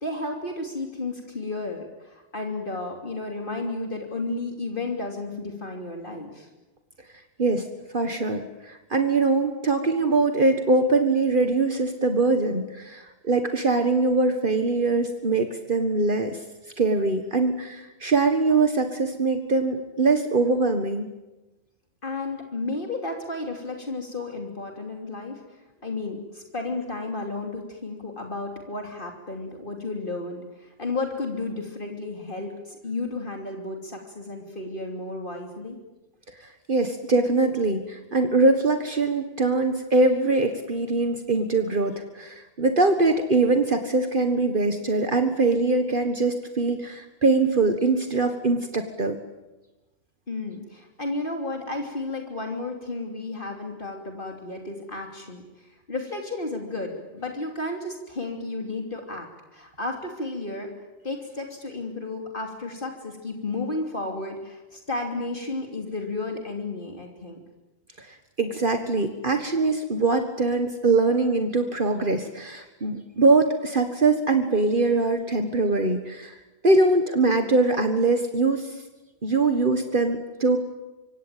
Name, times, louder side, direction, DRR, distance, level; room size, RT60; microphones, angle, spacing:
voice 1, 0.0-6.5 22.0-35.8 50.3-60.7 61.0-67.4, left 2 dB, 55° left, 2 dB, 3.3 m, -33 dB
voice 2, 7.9-16.4 16.8-21.1 36.7-49.2 68.0-76.4 76.6-78.8 79.2-80.6, right 3 dB, 55° right, 6 dB, 1.8 m, -22 dB
25.5 x 24.5 x 9.2 m, 1.1 s
omnidirectional pair, 1.1 m